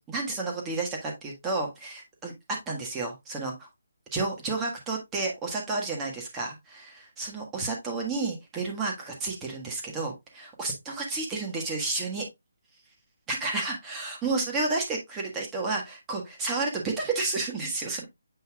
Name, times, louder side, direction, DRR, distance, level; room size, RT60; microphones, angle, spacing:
voice 1, 0.0-2.3 2.7-3.7 4.1-12.2 13.3-18.0, right 3 dB, 10° right, 0 dB, 1.5 m, -31 dB
7.9 x 5.3 x 2.3 m, 0.19 s
hypercardioid pair, 175°, 0 cm